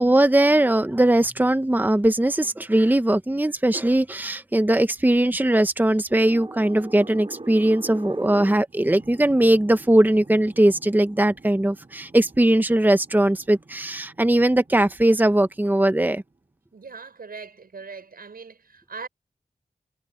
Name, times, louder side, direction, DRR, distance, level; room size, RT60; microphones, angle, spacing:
voice 1, 0.0-16.2, right 1 dB, 10° right, 0.9 m, -20 dB
sound 1, 6.1-16.5, right 3 dB, 40° right, 3.3 m, -43 dB
voice 2, 16.7-19.1, right 5 dB, 85° right, 5.5 m, -40 dB
wide cardioid pair, 55°, 15 cm